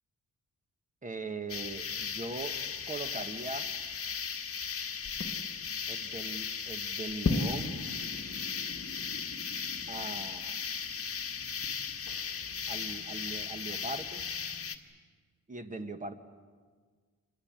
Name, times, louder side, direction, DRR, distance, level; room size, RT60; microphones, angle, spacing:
voice 1, 1.0-2.6 2.9-3.7 5.9-7.8 9.9-10.5 12.7-14.2 15.5-16.1, right 2 dB, 25° right, 8 dB, 1.4 m, -40 dB
sound 1, 1.5-14.8, left 5 dB, 45° left, 1.7 m, -36 dB
27.0 x 21.0 x 8.9 m, 1.5 s
wide cardioid pair, 150°, 33 cm